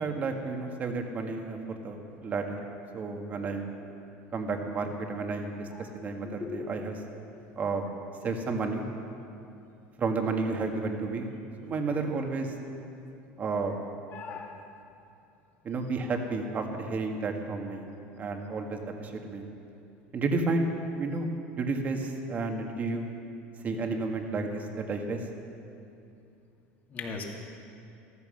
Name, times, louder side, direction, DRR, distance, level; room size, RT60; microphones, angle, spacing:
voice 1, 0.0-2.6 2.9-3.7 4.3-7.0 7.6-7.9 8.2-8.9 10.0-11.3 11.6-12.5 13.4-13.8 15.6-17.9 18.2-19.5 20.1-23.1 23.6-25.2, right 3 dB, 30° right, 3 dB, 1.8 m, -31 dB
voice 2, 14.1-14.5 26.9-27.2, left 5 dB, 35° left, 1 dB, 2.5 m, -38 dB
15.0 x 14.5 x 6.5 m, 2.7 s
supercardioid pair, 130°, 5 cm